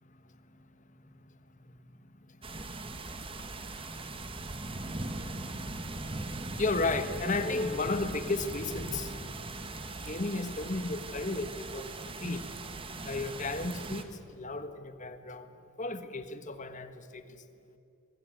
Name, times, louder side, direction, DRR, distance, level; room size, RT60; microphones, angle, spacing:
voice 1, 0.1-2.0 2.3-2.8 3.4-3.5 4.9-5.2 6.3-9.4 10.0-11.9 12.2-12.4 13.0-15.5 15.8-17.4, left 3 dB, 35° left, 10 dB, 1.4 m, -35 dB
sound 1, 2.4-14.0, right 2 dB, 25° right, 1.3 m, -40 dB
23.0 x 20.0 x 9.3 m, 2.5 s
head